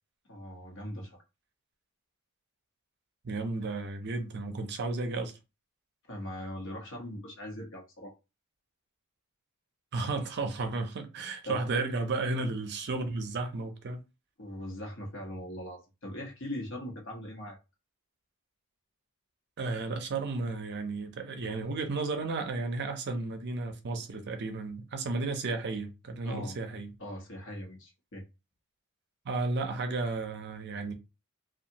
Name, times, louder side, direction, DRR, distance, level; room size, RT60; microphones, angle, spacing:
voice 1, 0.2-1.2 6.1-8.1 11.4-11.6 14.4-17.6 26.2-26.6 27.0-28.2, left 1 dB, 60° left, 1.0 m, -40 dB
voice 2, 3.2-5.3 9.9-14.0 19.6-26.9 29.3-30.9, right 3 dB, 50° right, 0.5 m, -33 dB
2.7 x 2.3 x 2.7 m
head